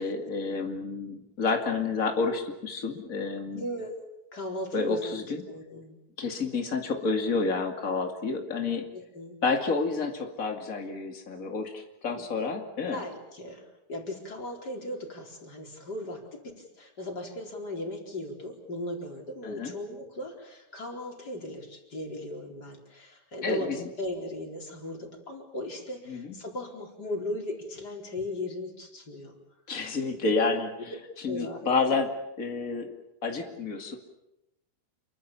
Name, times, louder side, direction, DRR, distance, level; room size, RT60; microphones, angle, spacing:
voice 1, 0.0-3.6 4.7-5.4 6.2-8.9 9.4-13.0 19.4-19.7 23.4-23.9 26.1-26.4 29.7-30.9 31.2-32.1 32.4-32.9 33.2-33.9, left 4 dB, 80° left, 4 dB, 0.7 m, -29 dB
voice 2, 3.5-3.9 4.3-5.0 5.5-6.0 8.9-9.4 12.1-12.2 12.9-29.3 30.5-30.6 30.9-31.0 31.2-31.6, left 1 dB, 20° left, 2 dB, 4.1 m, -37 dB
28.5 x 23.5 x 7.1 m, 0.91 s
omnidirectional pair, 5.8 m